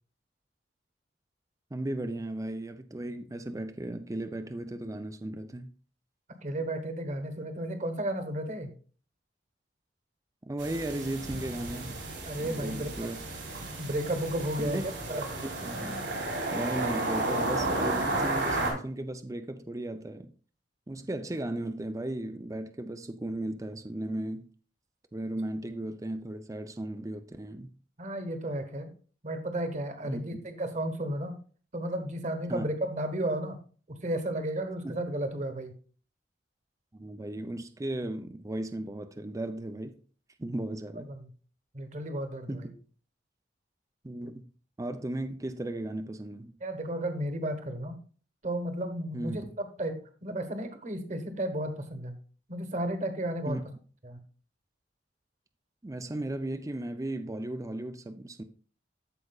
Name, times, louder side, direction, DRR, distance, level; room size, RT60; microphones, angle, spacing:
voice 1, 1.7-5.7 10.5-12.0 12.4-13.2 14.6-14.8 15.2-16.0 16.5-20.3 20.9-24.5 25.1-27.7 30.0-30.2 32.5-32.6 34.8-34.9 36.9-40.0 40.4-41.1 42.5-42.7 44.0-44.4 44.8-46.6 49.1-49.4 53.5-53.6 55.8-58.4, right 1 dB, 20° right, 0.5 m, -36 dB
voice 2, 6.4-8.7 12.2-13.1 13.8-15.3 28.0-28.9 29.2-31.4 31.7-33.6 33.9-35.7 41.0-41.3 41.7-42.7 46.6-48.0 48.4-52.2 52.5-53.6 54.0-54.2, right 1 dB, 45° right, 1.2 m, -33 dB
sound 1, 10.6-18.7, right 2 dB, 85° right, 3.5 m, -33 dB
14.5 x 4.9 x 2.3 m
head